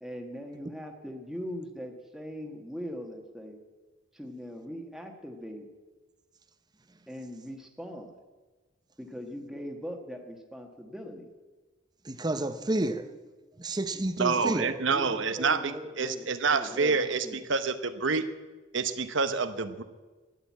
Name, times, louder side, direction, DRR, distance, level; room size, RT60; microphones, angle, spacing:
voice 1, 0.0-3.6 4.1-5.7 7.1-8.1 9.0-11.3 14.3-17.4, equal, ahead, 1.5 m, -40 dB
voice 2, 12.0-13.1 13.6-14.7, right 1 dB, 20° right, 0.7 m, -30 dB
voice 3, 14.2-18.3 18.7-19.8, right 4 dB, 65° right, 1.0 m, -28 dB
12.0 x 11.0 x 8.5 m
head